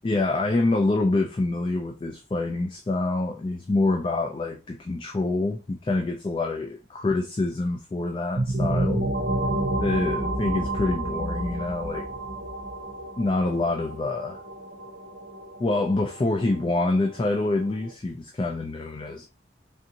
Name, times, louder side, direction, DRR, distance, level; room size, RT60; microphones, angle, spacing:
voice 1, 0.0-9.1 9.8-12.1 13.2-14.4 15.6-19.3, left 2 dB, 30° left, 0.3 m, -26 dB
sound 1, 8.3-17.9, right 1 dB, 65° right, 0.6 m, -30 dB
3.5 x 2.6 x 2.8 m
head